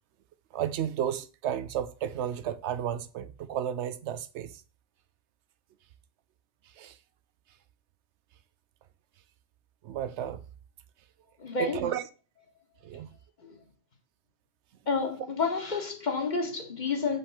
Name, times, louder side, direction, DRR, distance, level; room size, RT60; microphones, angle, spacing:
voice 1, 0.5-4.5 6.8-6.9 9.8-10.4 11.6-12.0 12.8-13.1, right 10 dB, 90° right, 0.9 m, -32 dB
voice 2, 11.4-11.9 13.4-13.6 14.9-17.2, left 4 dB, 45° left, 1.3 m, -30 dB
5.5 x 3.5 x 5.8 m
omnidirectional pair, 1.1 m